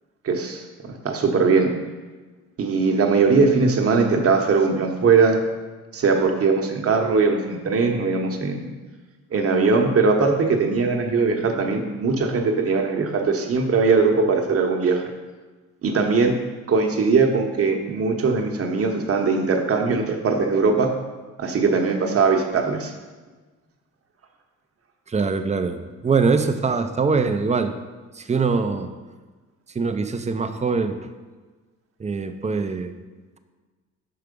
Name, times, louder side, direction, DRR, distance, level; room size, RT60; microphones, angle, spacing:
voice 1, 0.2-1.7 2.6-5.4 5.9-8.7 9.3-15.0 15.8-16.3 16.7-20.9 21.4-22.9, right 4 dB, 50° right, 3 dB, 1.0 m, -20 dB
voice 2, 25.1-27.7 28.2-28.9 29.7-31.0 32.0-32.9, right 4 dB, 25° right, 8 dB, 0.5 m, -23 dB
5.8 x 4.8 x 5.2 m, 1.3 s
cardioid pair, 90°, 30 cm